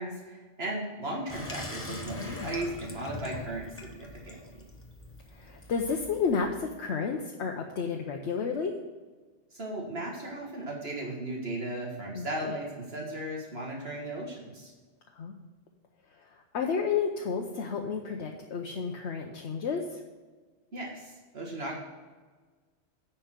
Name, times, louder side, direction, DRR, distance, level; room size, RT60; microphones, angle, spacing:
voice 1, 0.0-4.4 9.5-14.7 20.7-21.7, right 1 dB, 65° right, -2 dB, 1.7 m, -36 dB
Water tap faucet / Sink (filling or washing), 1.3-6.5, left 1 dB, 15° left, 0.9 m, -42 dB
voice 2, 1.9-2.5 5.3-8.7 12.1-12.5 15.1-15.3 16.1-20.0, left 5 dB, 80° left, 2 dB, 1.1 m, -32 dB
10.0 x 4.5 x 7.4 m, 1.4 s
omnidirectional pair, 1.1 m